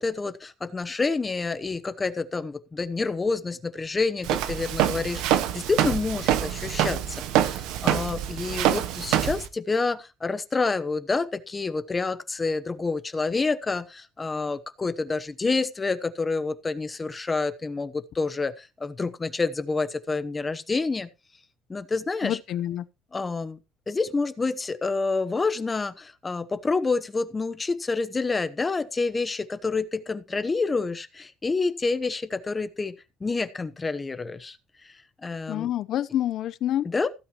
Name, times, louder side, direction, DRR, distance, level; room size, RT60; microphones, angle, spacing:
voice 1, 0.0-21.1 21.7-22.4 23.1-23.6 23.9-32.9 33.2-34.6 34.8-34.9 35.2-35.7 36.8-37.1, left 3 dB, 20° left, 0.9 m, -28 dB
Walk footsteps, 4.2-9.5, right 11 dB, 90° right, 1.5 m, -25 dB
voice 2, 22.2-22.8 35.5-36.9, left 12 dB, 60° left, 0.8 m, -27 dB
16.0 x 8.6 x 3.0 m
cardioid pair, 135°, 0 cm